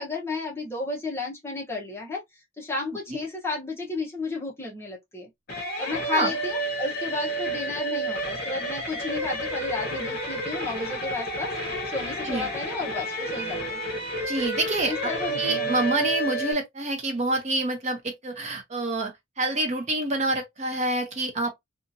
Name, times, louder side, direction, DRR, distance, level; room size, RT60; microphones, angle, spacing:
voice 1, 0.0-5.3 5.8-13.8 14.8-15.9, left 3 dB, 10° left, 0.9 m, -33 dB
sound 1, 5.5-16.5, right 1 dB, 50° left, 0.9 m, -30 dB
voice 2, 14.3-21.5, right 2 dB, 35° right, 0.6 m, -27 dB
2.7 x 2.4 x 2.6 m
head